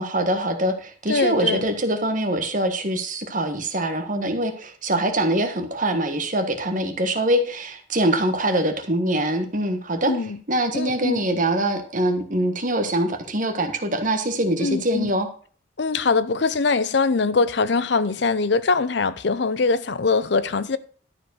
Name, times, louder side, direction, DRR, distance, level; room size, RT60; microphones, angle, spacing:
voice 1, 0.0-10.1 10.5-15.3, right 1 dB, 45° right, 1.5 m, -23 dB
voice 2, 1.1-1.6 10.1-10.4 10.7-11.3 14.6-15.1 15.8-20.8, left 4 dB, 65° left, 0.6 m, -22 dB
12.5 x 4.8 x 6.3 m
head